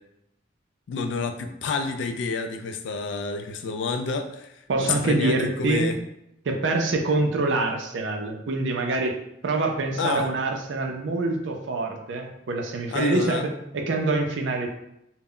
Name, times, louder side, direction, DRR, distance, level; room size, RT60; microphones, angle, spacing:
voice 1, 0.9-5.9 10.0-10.3 12.9-13.4, left 4 dB, 70° left, 7 dB, 0.3 m, -29 dB
voice 2, 4.7-5.9 6.5-9.1 9.4-14.7, right 2 dB, 75° right, 3 dB, 0.4 m, -25 dB
2.1 x 2.1 x 3.6 m, 0.81 s
head